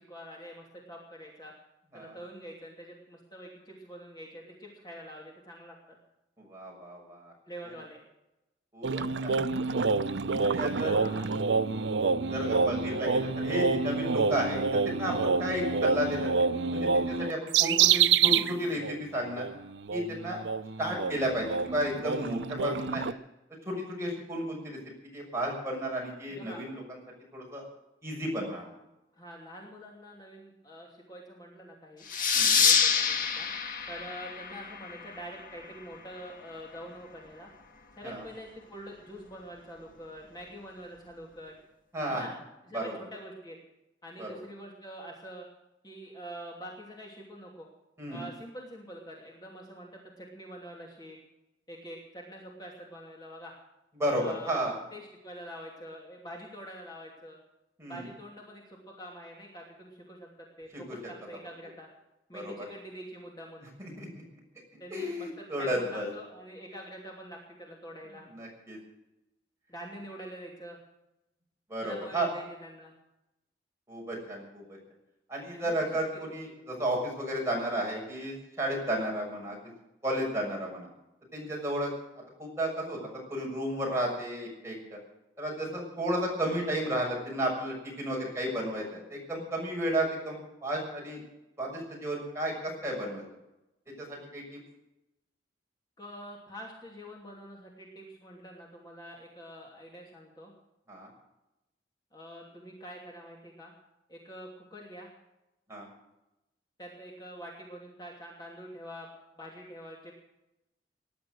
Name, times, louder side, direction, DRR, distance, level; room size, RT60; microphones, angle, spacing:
voice 1, 0.0-1.5 1.9-5.8 7.5-8.0 10.6-11.3 12.9-13.0 26.3-26.6 29.1-32.0 32.6-33.5 33.9-37.5 38.0-41.6 42.1-42.3 42.7-43.6 44.0-45.5 45.8-47.7 48.1-51.2 51.7-53.5 54.2-54.6 54.9-57.4 57.9-61.9 62.3-63.7 64.8-68.3 69.7-70.8 71.8-72.9 75.5-75.8 76.1-76.2 96.0-100.5 102.1-103.7 104.1-105.1 106.8-109.1 109.4-110.1, equal, 25° left, -2 dB, 2.8 m, -45 dB
voice 2, 6.4-7.3 8.7-9.7 10.4-11.1 12.3-16.3 16.7-19.5 19.9-20.4 20.8-23.1 23.6-27.0 27.3-27.6 28.0-28.7 32.3-32.6 38.0-38.2 41.9-42.2 42.7-42.9 44.2-44.4 48.0-48.3 54.0-54.8 57.8-58.1 60.7-61.0 62.3-62.7 63.8-64.2 64.9-66.1 68.3-68.8 71.7-72.3 73.9-74.8 75.3-79.6 80.0-80.9 81.3-81.9 82.4-85.0 85.4-91.2 91.6-93.2 93.9-94.6 100.9-101.1 105.7-105.9, right 1 dB, 15° right, -2 dB, 6.5 m, -33 dB
sound 1, 8.8-18.5 18.8-19.0 19.4-23.1, right 5 dB, 80° right, 0.6 m, -27 dB
sound 2, 32.1-35.3, left 6 dB, 50° left, 1.6 m, -26 dB
19.0 x 11.5 x 6.3 m, 0.93 s
head